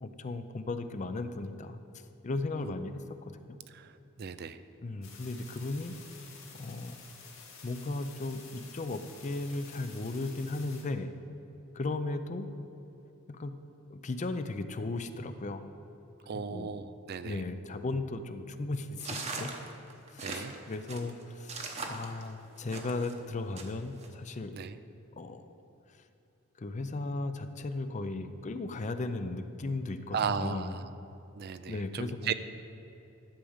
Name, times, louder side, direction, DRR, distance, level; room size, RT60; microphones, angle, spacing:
voice 1, 0.0-3.6 4.8-6.0 6.5-7.0 7.6-11.1 11.7-12.5 13.3-15.7 16.3-16.8 17.2-19.5 20.1-24.6 25.2-25.5 26.6-30.8 31.7-32.3, left 2 dB, 35° left, 10 dB, 0.5 m, -36 dB
voice 2, 4.2-4.6 16.3-17.4 20.2-20.5 24.5-24.8 30.1-30.9 31.4-32.3, right 7 dB, 50° right, 12 dB, 0.4 m, -36 dB
sound 1, 5.0-10.8, left 5 dB, 70° left, 2.2 m, -51 dB
sound 2, 19.0-23.1 23.6-24.1, right 3 dB, 30° right, 0.9 m, -40 dB
11.5 x 5.0 x 7.1 m, 3.0 s
head